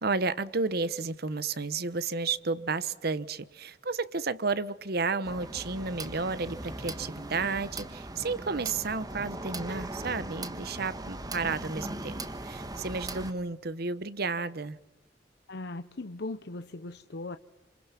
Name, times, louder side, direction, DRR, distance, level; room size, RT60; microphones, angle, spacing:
voice 1, 0.0-14.8, right 4 dB, 60° right, 1.1 m, -32 dB
sound 1, 5.2-13.3, right 2 dB, 20° right, 1.5 m, -39 dB
voice 2, 15.5-17.4, left 2 dB, 65° left, 0.8 m, -39 dB
28.0 x 27.5 x 5.9 m
head